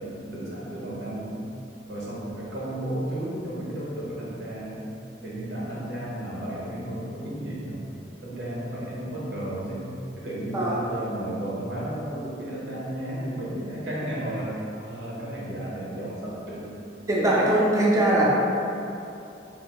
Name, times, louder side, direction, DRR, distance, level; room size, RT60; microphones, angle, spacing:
voice 1, 0.0-1.4 1.9-4.8 5.2-7.8 8.2-9.9 10.2-14.5 14.8-16.7, right 1 dB, 85° right, -6 dB, 0.8 m, -33 dB
voice 2, 17.1-18.3, right 1 dB, 20° right, -6 dB, 0.4 m, -21 dB
3.5 x 2.5 x 2.9 m, 2.8 s
head